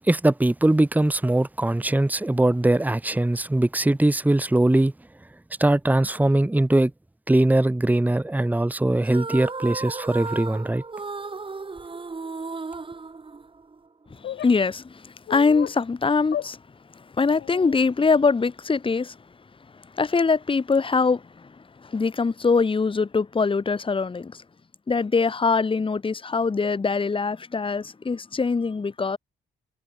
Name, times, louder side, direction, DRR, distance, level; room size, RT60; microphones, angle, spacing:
voice 1, 0.1-4.9 5.6-6.9 7.3-10.8, right 1 dB, 10° right, 1.4 m, -21 dB
sound 1, 9.0-13.9, right 4 dB, 25° right, 2.7 m, -34 dB
voice 2, 14.1-16.6 16.9-19.2 19.9-24.4 24.9-29.2, left 4 dB, 25° left, 1.7 m, -23 dB
sound 2, 14.2-14.5 15.3-15.8 16.3-16.5 17.4-17.8, left 11 dB, 55° left, 0.8 m, -33 dB
cardioid pair, 90°, 20 cm